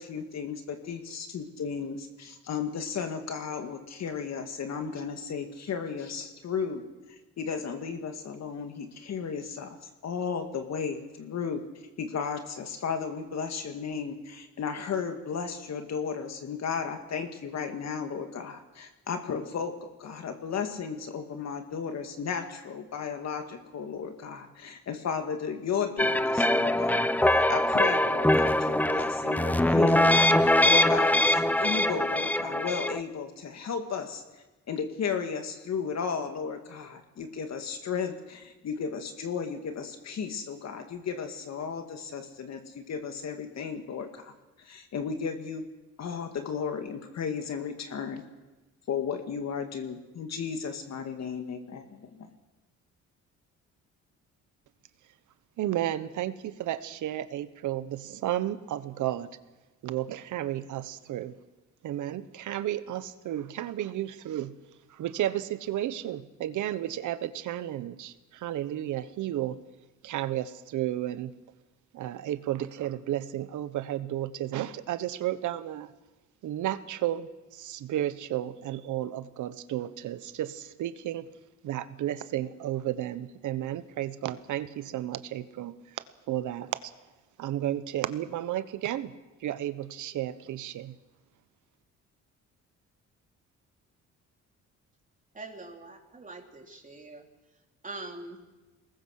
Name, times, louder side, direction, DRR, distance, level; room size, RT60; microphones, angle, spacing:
voice 1, 0.0-6.8 7.4-9.8 10.0-11.6 12.0-34.2 34.7-44.3 44.6-45.7 46.0-48.2 48.9-52.3, left 6 dB, 60° left, 6 dB, 2.2 m, -34 dB
sound 1, 26.0-33.0, left 1 dB, 5° left, 0.7 m, -23 dB
voice 2, 55.6-59.3 59.8-61.3 61.8-64.5 64.9-69.6 70.0-71.3 71.9-75.9 76.4-81.2 81.6-86.8 87.4-89.1 89.4-91.0, right 12 dB, 80° right, 13 dB, 1.2 m, -33 dB
voice 3, 95.3-97.3 97.8-98.5, right 2 dB, 25° right, 2 dB, 3.5 m, -43 dB
23.0 x 19.5 x 6.6 m, 1.1 s
cardioid pair, 90°, 30 cm